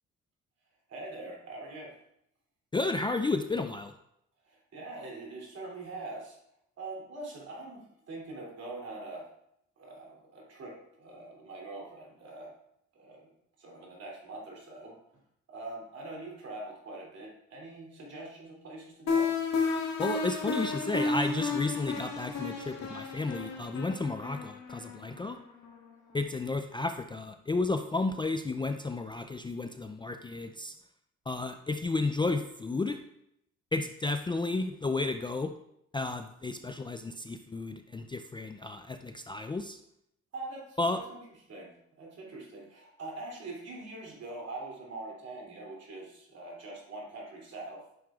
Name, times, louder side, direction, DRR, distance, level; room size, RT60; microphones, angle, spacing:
voice 1, 0.9-1.9 4.4-6.4 6.8-9.3 9.8-12.5 12.9-13.3 13.6-15.0 15.5-19.3 40.3-41.2 41.5-47.8, right 2 dB, 55° right, -2 dB, 2.9 m, -43 dB
voice 2, 2.7-3.9 20.0-25.4 26.1-30.7 31.3-33.0 33.7-35.5 35.9-39.8 40.8-41.0, left 3 dB, 15° left, 7 dB, 0.3 m, -32 dB
sound 1, 19.1-25.8, left 4 dB, 65° left, 1.8 m, -32 dB
9.3 x 6.4 x 2.4 m, 0.76 s
cardioid pair, 90°, 30 cm